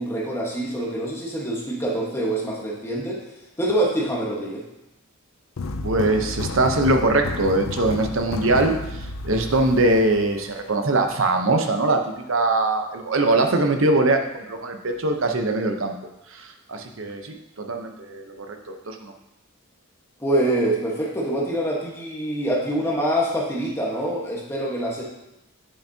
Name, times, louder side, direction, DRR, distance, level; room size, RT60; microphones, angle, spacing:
voice 1, 0.0-3.2 3.6-4.6 20.2-25.0, right 1 dB, 10° left, -3 dB, 1.3 m, -25 dB
sound 1, 5.6-10.7, left 3 dB, 75° left, 0.5 m, -31 dB
voice 2, 5.8-12.0 12.3-15.9 16.3-19.1, right 2 dB, 70° right, 4 dB, 0.8 m, -22 dB
8.8 x 6.9 x 2.8 m, 0.89 s
head